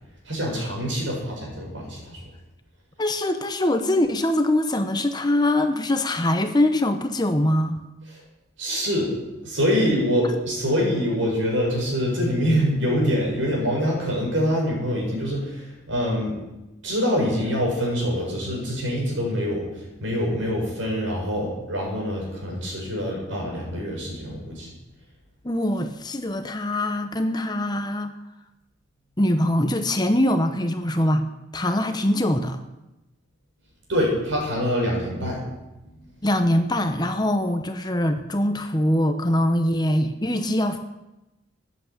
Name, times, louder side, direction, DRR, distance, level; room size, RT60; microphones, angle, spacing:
voice 1, 0.3-2.2 8.6-9.1 9.4-16.4 16.8-24.7 33.9-35.5 35.8-36.0, equal, 70° right, -2 dB, 7.7 m, -25 dB
voice 2, 3.0-7.8 25.4-28.1 29.2-31.2 31.5-32.6 36.2-40.8, left 1 dB, 20° left, 7 dB, 1.0 m, -23 dB
14.0 x 10.5 x 8.8 m, 0.99 s
head